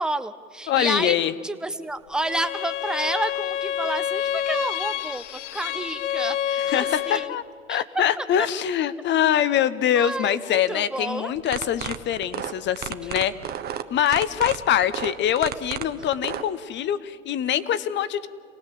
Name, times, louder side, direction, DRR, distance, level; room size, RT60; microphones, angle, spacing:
voice 1, 0.0-1.2 1.4-7.4 7.7-7.8 8.2-8.3 10.0-11.4 13.0-13.1, right 2 dB, ahead, 10 dB, 0.8 m, -30 dB
voice 2, 0.7-1.3 6.6-7.4 7.7-13.3 13.9-18.3, left 10 dB, 25° left, 16 dB, 1.0 m, -24 dB
Bowed string instrument, 2.2-7.4, left 11 dB, 60° left, 0.8 m, -28 dB
sound 1, 11.4-16.4, right 9 dB, 25° right, 1.1 m, -32 dB
27.5 x 18.5 x 7.5 m, 2.2 s
hypercardioid pair, 110°, 41 cm